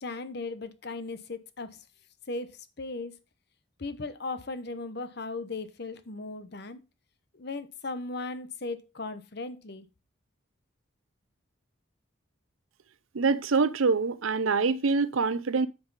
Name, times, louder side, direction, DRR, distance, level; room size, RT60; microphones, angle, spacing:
voice 1, 0.0-1.8 2.3-3.1 3.8-6.8 7.3-9.9, left 3 dB, 55° left, 0.9 m, -37 dB
voice 2, 13.1-15.7, right 4 dB, 80° right, 0.6 m, -25 dB
9.6 x 5.6 x 4.0 m
head